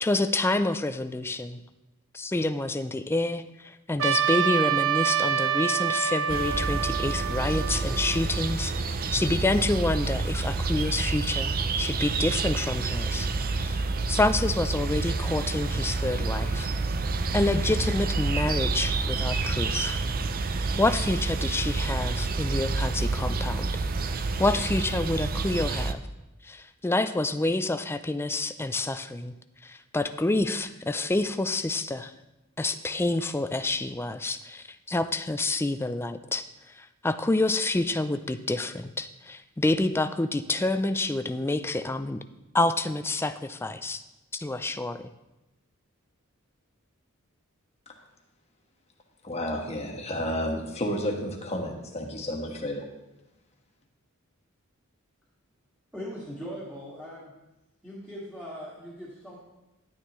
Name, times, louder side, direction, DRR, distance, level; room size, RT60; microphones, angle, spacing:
voice 1, 0.0-1.6 2.1-16.7 17.3-20.0 20.8-23.7 24.0-26.0 26.4-29.3 29.6-32.1 32.6-42.2 42.5-44.0 44.3-45.1, left 2 dB, 10° left, 11 dB, 0.4 m, -28 dB
Trumpet, 4.0-8.5, right 8 dB, 65° right, 0.8 m, -27 dB
sound 1, 6.3-25.9, right 3 dB, 45° right, 0.5 m, -28 dB
voice 2, 49.2-52.8, equal, 30° left, 1 dB, 1.4 m, -31 dB
voice 3, 55.9-57.3 57.8-59.4, equal, 5° right, -7 dB, 1.9 m, -40 dB
11.0 x 9.9 x 3.1 m, 0.97 s
head